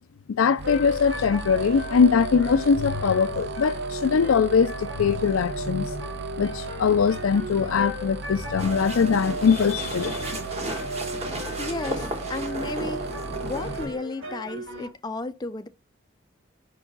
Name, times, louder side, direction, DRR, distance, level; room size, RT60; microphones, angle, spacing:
voice 1, 0.4-6.0 6.4-10.4, left 6 dB, 85° left, 0.4 m, -22 dB
sound 1, 0.6-13.8, right 4 dB, 55° right, 0.6 m, -38 dB
sound 2, 0.6-14.9, right 1 dB, 70° right, 2.5 m, -35 dB
sound 3, 8.6-13.9, right 1 dB, 30° right, 1.5 m, -35 dB
voice 2, 11.6-13.1 13.4-15.7, left 3 dB, 20° left, 0.4 m, -33 dB
5.4 x 4.6 x 5.3 m
head